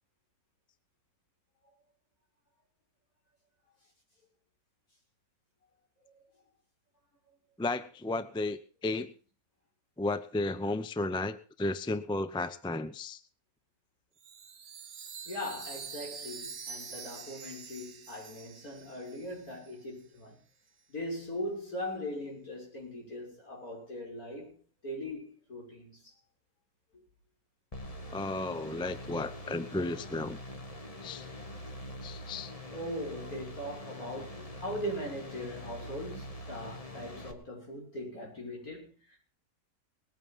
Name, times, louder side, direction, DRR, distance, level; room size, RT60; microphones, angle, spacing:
voice 1, 7.6-9.1 10.0-13.2 28.1-30.4 31.0-31.3 32.0-32.5, left 2 dB, 5° left, 0.4 m, -33 dB
Chime, 14.2-19.7, right 6 dB, 45° right, 1.0 m, -46 dB
voice 2, 15.2-20.4 20.9-26.1 32.7-39.2, equal, 80° left, 6.5 m, -40 dB
sound 1, 27.7-37.3, left 1 dB, 25° left, 1.4 m, -44 dB
20.0 x 9.2 x 5.4 m
omnidirectional pair, 1.5 m